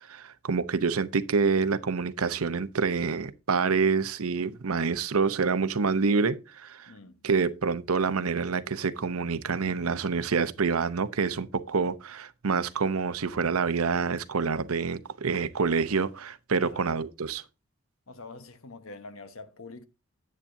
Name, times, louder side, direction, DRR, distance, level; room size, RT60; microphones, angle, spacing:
voice 1, 0.0-6.9 7.2-17.4, right 5 dB, 90° right, 0.8 m, -27 dB
voice 2, 6.9-7.2 16.6-16.9 18.1-19.8, left 3 dB, 75° left, 1.1 m, -45 dB
9.9 x 8.4 x 2.6 m
head